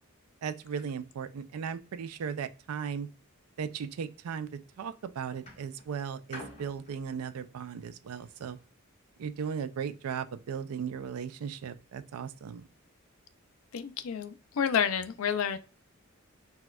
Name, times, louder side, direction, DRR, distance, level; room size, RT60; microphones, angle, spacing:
voice 1, 0.4-3.1 3.6-8.6 9.2-12.6, right 7 dB, 90° right, 0.4 m, -37 dB
sound 1, 4.4-4.8 5.4-8.7 9.5-9.6, left 1 dB, 30° left, 1.6 m, -50 dB
voice 2, 13.7-15.6, left 7 dB, 70° left, 0.4 m, -29 dB
4.2 x 2.3 x 2.2 m
head